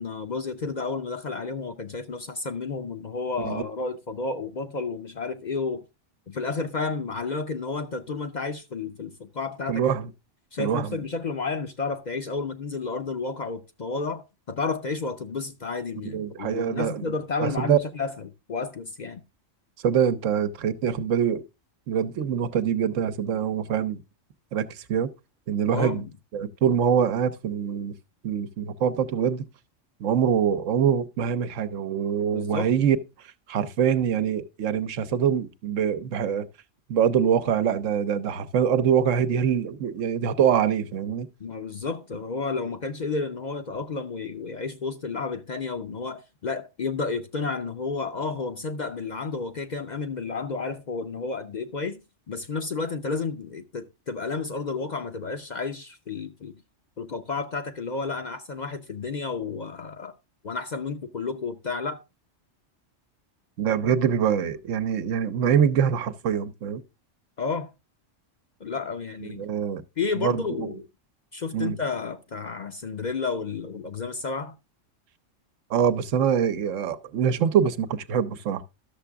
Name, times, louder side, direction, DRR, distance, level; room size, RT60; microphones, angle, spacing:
voice 1, 0.0-5.8 6.3-9.9 10.5-19.2 25.7-26.1 32.3-32.7 41.4-52.0 52.3-56.6 57.0-60.1 60.4-62.0 67.4-67.7 68.6-69.4 70.0-70.9 71.3-74.6, left 4 dB, 45° left, 0.6 m, -31 dB
voice 2, 9.7-10.1 10.6-11.0 16.1-17.1 17.4-17.8 19.8-21.4 21.9-24.0 24.5-25.1 25.5-26.0 26.3-27.9 28.2-29.5 30.0-33.0 33.5-36.5 36.9-41.3 63.6-66.8 69.2-69.8 70.2-70.7 71.5-71.8 75.7-78.6, right 8 dB, 80° right, 1.1 m, -24 dB
12.0 x 6.8 x 3.4 m
omnidirectional pair, 1.3 m